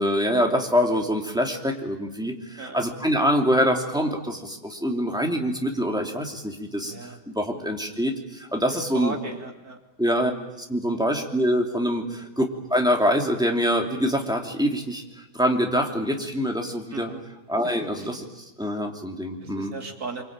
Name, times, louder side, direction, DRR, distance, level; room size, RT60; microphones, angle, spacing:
voice 1, 0.0-9.2 10.0-10.3 10.7-12.4 12.7-15.0 15.3-17.1 17.5-18.2 18.6-19.7, equal, ahead, 1 dB, 2.8 m, -25 dB
voice 2, 8.9-9.8 16.9-17.2 19.4-20.2, right 3 dB, 60° right, 2 dB, 3.4 m, -36 dB
25.5 x 24.5 x 8.9 m, 0.99 s
omnidirectional pair, 1.8 m